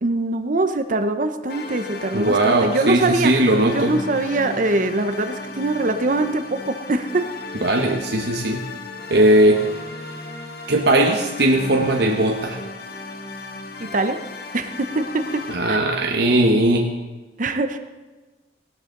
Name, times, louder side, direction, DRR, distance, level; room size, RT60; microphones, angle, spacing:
voice 1, 0.0-7.3 13.8-14.2 14.5-15.8 17.4-17.8, right 2 dB, 45° right, 8 dB, 0.7 m, -23 dB
sound 1, 1.5-15.6, left 3 dB, 55° left, 1.4 m, -35 dB
voice 2, 2.1-3.9 7.6-8.6 9.1-9.6 10.7-12.6 15.5-16.9, right 1 dB, 60° right, 2 dB, 1.1 m, -18 dB
17.0 x 12.0 x 3.8 m, 1.2 s
head